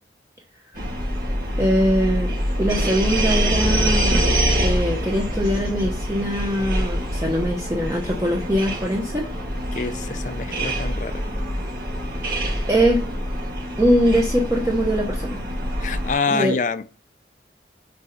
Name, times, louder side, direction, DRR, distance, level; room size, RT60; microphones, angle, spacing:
sound 1, 0.7-16.1, equal, 55° right, 4.1 m, -25 dB
voice 1, 1.6-4.3 4.6-9.3 12.7-13.0 13.8-15.4 16.3-16.6, equal, 15° right, 0.9 m, -22 dB
voice 2, 9.7-11.2 15.8-16.9, left 4 dB, 45° left, 0.5 m, -26 dB
6.3 x 4.2 x 5.3 m
head